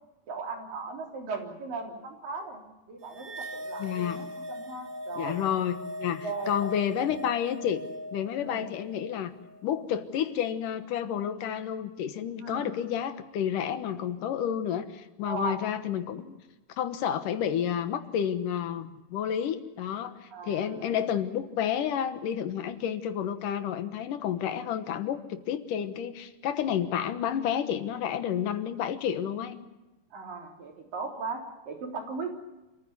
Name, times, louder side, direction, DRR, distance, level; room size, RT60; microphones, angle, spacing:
voice 1, 0.3-2.6 2.9-5.4 6.2-6.8 8.4-8.7 12.4-12.8 15.2-15.6 20.3-20.9 30.1-32.3, right 4 dB, 80° right, 2 dB, 5.2 m, -37 dB
sound 1, 3.1-9.7, left 1 dB, 55° right, 3.3 m, -40 dB
voice 2, 3.8-4.2 5.2-7.8 8.1-9.3 9.6-16.4 16.8-29.6, left 9 dB, 75° left, 10 dB, 2.8 m, -30 dB
27.0 x 15.0 x 9.6 m, 1.1 s
omnidirectional pair, 3.8 m